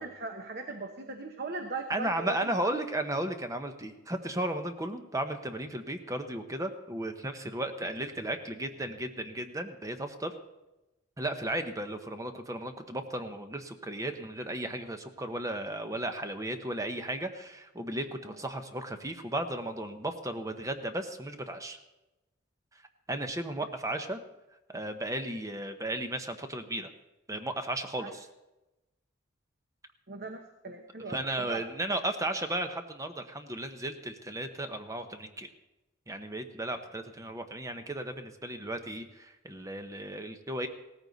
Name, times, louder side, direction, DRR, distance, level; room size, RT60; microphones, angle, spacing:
voice 1, 0.0-2.5 7.8-7.9 18.3-18.4 28.0-28.2 30.1-31.6, right 3 dB, 50° right, 5 dB, 1.0 m, -39 dB
voice 2, 1.9-10.3 11.2-21.8 23.1-24.2 24.7-26.9 27.3-28.3 31.1-35.5 36.1-40.7, right 1 dB, 15° right, 7 dB, 0.9 m, -35 dB
17.0 x 14.5 x 4.0 m, 1.0 s
head